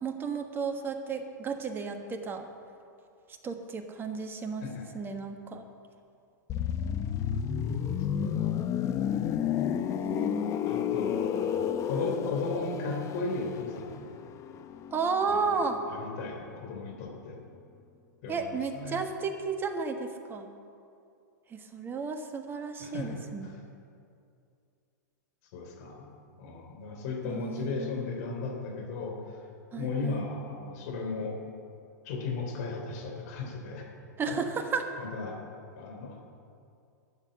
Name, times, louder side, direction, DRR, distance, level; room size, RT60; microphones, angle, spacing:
voice 1, 0.0-2.5 3.4-4.7 4.9-5.6 10.0-10.6 14.9-15.8 18.3-20.5 21.5-23.5 27.2-28.1 29.7-30.2 34.2-34.9, right 5 dB, 20° right, 6 dB, 1.4 m, -33 dB
sound 1, 6.5-16.2 16.4-16.6, left 9 dB, 30° left, 0.8 m, -31 dB
voice 2, 10.6-14.1 15.3-17.4 18.2-19.0 22.8-23.5 25.5-26.0 26.4-29.4 29.7-31.4 32.0-33.9 34.3-34.4 35.0-35.4 35.7-36.2, left 3 dB, 55° left, 1 dB, 3.3 m, -36 dB
12.5 x 7.4 x 9.7 m, 2.5 s
hypercardioid pair, 115°, 10 cm